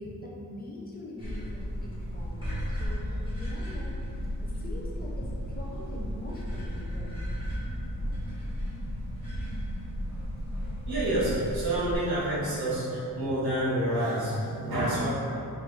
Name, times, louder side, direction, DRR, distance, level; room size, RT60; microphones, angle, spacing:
voice 1, 0.0-3.9 4.2-7.1, left 1 dB, 25° left, -4 dB, 0.5 m, -42 dB
sound 1, 1.2-11.9, equal, 15° right, 1.3 m, -34 dB
voice 2, 10.8-15.1, right 1 dB, 90° right, -9 dB, 1.4 m, -28 dB
4.6 x 2.6 x 3.1 m, 2.7 s
wide cardioid pair, 120°, 36 cm